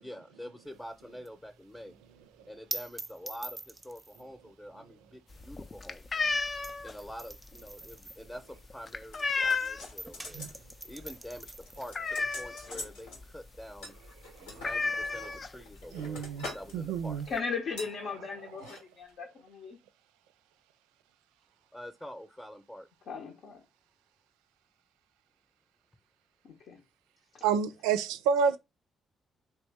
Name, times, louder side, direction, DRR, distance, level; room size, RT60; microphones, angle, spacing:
voice 1, 0.0-2.0 2.5-6.2 6.8-10.4 10.8-13.9 14.4-16.3 16.5-17.2 21.7-22.9, equal, 15° left, 0.7 m, -46 dB
sound 1, 0.7-9.5 9.8-17.1, right 2 dB, 20° right, 0.5 m, -46 dB
sound 2, 5.3-10.1 10.4-10.7 11.0-11.1 11.5-12.8 13.2-13.3 13.6-13.8 14.1-14.2 14.6-15.8 16.6-16.7 17.0-17.4, left 4 dB, 40° left, 0.4 m, -32 dB
sound 3, 9.1-10.6 10.9-11.2 11.5-13.2 13.8-14.8 15.4-16.7 17.0-17.3 17.8-18.0 18.5-18.8 19.1-19.2, left 2 dB, 90° left, 1.2 m, -45 dB
voice 2, 15.9-16.5 16.7-17.3 18.6-18.7 27.4-28.6, right 6 dB, 85° right, 0.3 m, -29 dB
voice 3, 17.3-19.8 23.1-23.6 26.4-26.8 27.3-27.4, left 5 dB, 70° left, 0.8 m, -37 dB
3.0 x 3.0 x 3.4 m
hypercardioid pair, 45°, 0 cm